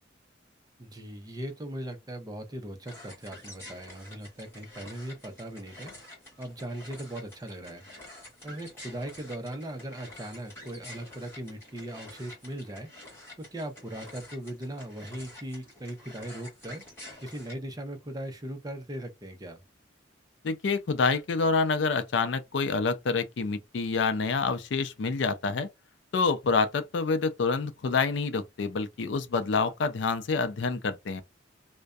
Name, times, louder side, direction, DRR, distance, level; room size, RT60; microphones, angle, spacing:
voice 1, 0.8-5.9 6.4-7.8 8.4-12.9 13.4-16.8 17.2-19.6, right 1 dB, 20° right, 0.5 m, -39 dB
sound 1, 2.9-17.5, left 1 dB, 15° left, 1.1 m, -49 dB
voice 2, 20.4-25.7 26.1-31.2, left 4 dB, 65° left, 0.4 m, -27 dB
2.5 x 2.1 x 2.2 m
head